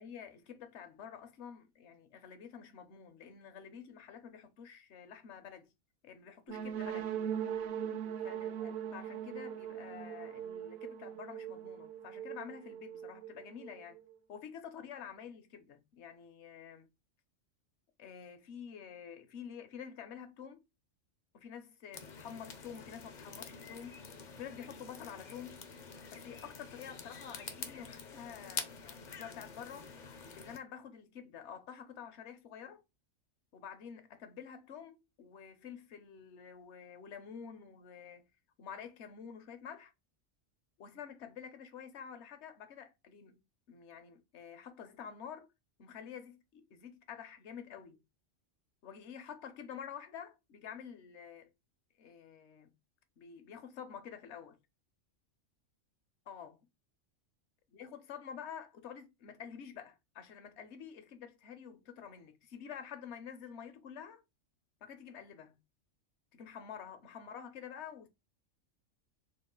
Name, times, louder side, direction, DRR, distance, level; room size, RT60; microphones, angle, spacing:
voice 1, 0.0-5.7 6.0-7.1 8.2-14.0 14.3-16.9 18.0-20.6 21.3-24.0 24.4-25.6 26.1-29.9 30.4-32.8 33.5-38.3 38.6-39.9 40.8-45.5 45.8-48.0 48.8-51.5 52.0-52.7 53.2-54.6 56.3-56.6 57.7-64.2 64.8-65.6 66.3-68.1, left 7 dB, 65° left, 0.9 m, -49 dB
sound 1, 6.5-14.2, right 9 dB, 60° right, 0.6 m, -40 dB
sound 2, 21.9-30.6, left 5 dB, 50° left, 0.6 m, -47 dB
3.9 x 2.4 x 3.7 m
omnidirectional pair, 1.3 m